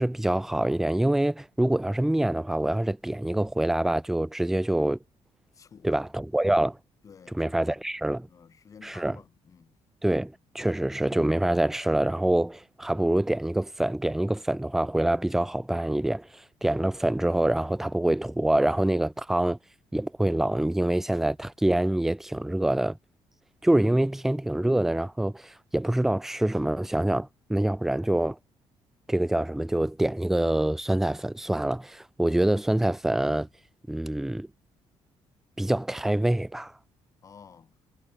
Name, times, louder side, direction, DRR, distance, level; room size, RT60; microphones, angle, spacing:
voice 1, 0.0-5.0 5.8-6.8 7.3-8.3 8.8-9.2 10.0-19.6 19.9-23.0 23.6-28.4 29.1-33.5 33.9-34.5 35.6-36.7, right 1 dB, 5° right, 0.5 m, -25 dB
voice 2, 5.5-6.0 7.0-7.8 8.3-9.7 37.2-37.7, left 6 dB, 30° left, 2.5 m, -52 dB
cardioid pair, 180°, 11 cm